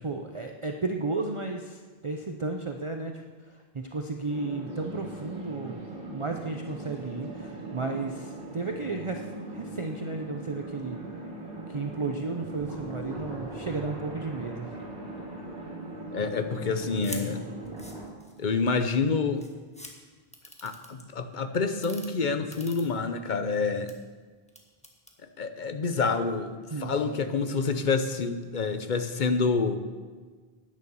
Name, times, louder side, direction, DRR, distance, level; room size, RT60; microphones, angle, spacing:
voice 1, 0.0-5.8 6.1-9.3 9.5-11.0 11.7-14.7 26.7-27.2, right 3 dB, 35° right, 4 dB, 0.7 m, -33 dB
sound 1, 4.3-18.1, right 2 dB, 65° right, 3.5 m, -40 dB
voice 2, 16.1-17.4 18.4-19.5 20.6-23.9 25.4-29.8, left 4 dB, 50° left, 9 dB, 1.0 m, -28 dB
sound 2, 17.0-17.2 17.6-18.5 19.1-19.2 19.4-19.9 20.3-21.0 21.7-22.1 22.5-23.3 23.7-23.9 24.5-25.1, equal, 5° left, 1.5 m, -43 dB
10.5 x 9.7 x 7.0 m, 1.5 s
omnidirectional pair, 1.0 m